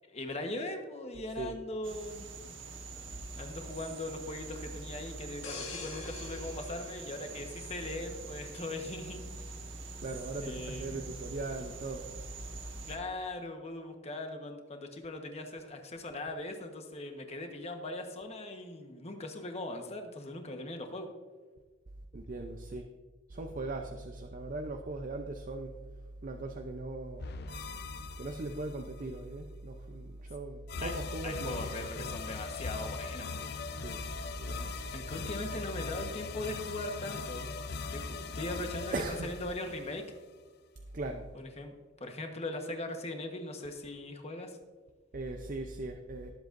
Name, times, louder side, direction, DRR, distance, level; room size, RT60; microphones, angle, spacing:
voice 1, 0.1-2.3 3.4-9.5 10.4-11.0 12.9-21.1 30.8-30.9 31.2-33.5 34.9-37.5 37.9-40.0 41.3-41.7 42.0-44.6, left 2 dB, 30° left, 4 dB, 1.2 m, -40 dB
sound 1, 1.8-13.0, right 3 dB, 65° right, 1.4 m, -44 dB
sound 2, 5.4-8.1 8.6-8.8, left 4 dB, 80° left, 1.9 m, -45 dB
voice 2, 10.0-12.0 22.1-22.8 23.3-25.8 26.2-27.3 28.2-31.7 32.0-32.2 33.7-34.0 34.3-35.3 38.9-39.3 40.9-41.3 45.1-46.3, right 2 dB, 40° right, 4 dB, 0.6 m, -39 dB
sound 3, 27.2-29.1 30.7-40.4, left 4 dB, 50° left, 0.5 m, -40 dB
18.5 x 7.9 x 2.6 m, 1.4 s
head